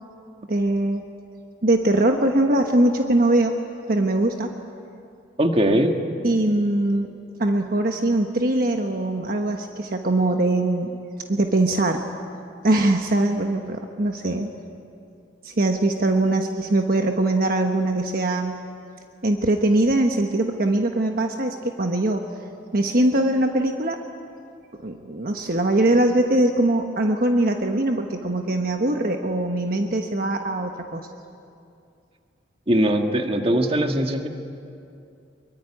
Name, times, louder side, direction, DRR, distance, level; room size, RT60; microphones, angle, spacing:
voice 1, 0.5-1.0 1.6-3.5 3.9-4.5 6.2-7.1 7.4-10.9 11.3-12.0 12.6-14.5 15.4-18.6 19.2-22.2 22.7-24.0 24.8-31.1, right 1 dB, 50° right, 4 dB, 1.2 m, -21 dB
voice 2, 5.4-6.0 32.7-34.3, right 1 dB, 30° right, 4 dB, 1.8 m, -20 dB
23.5 x 23.0 x 9.8 m, 2.6 s
head